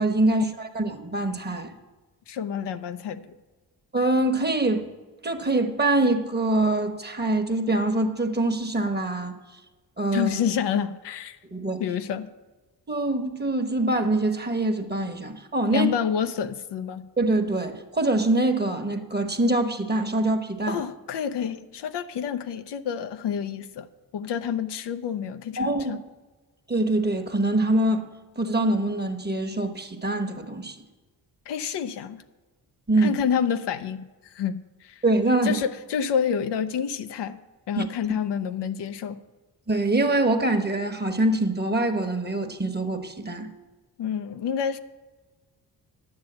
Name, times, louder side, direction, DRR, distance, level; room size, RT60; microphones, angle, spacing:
voice 1, 0.0-1.7 3.9-4.9 5.2-9.3 10.0-10.3 11.5-11.8 12.9-15.9 17.2-20.8 25.6-25.9 26.7-28.1 28.4-30.8 32.9-33.1 35.0-35.6 37.8-37.9 39.7-43.5, right 2 dB, 25° right, 1.2 m, -24 dB
voice 2, 2.3-3.3 10.1-11.4 11.8-12.3 15.7-17.1 20.7-23.9 24.1-26.0 31.5-32.2 33.0-35.0 35.4-37.4 37.7-39.2 44.0-44.8, left 8 dB, 75° left, 0.7 m, -28 dB
9.8 x 6.8 x 7.9 m
cardioid pair, 70°, 41 cm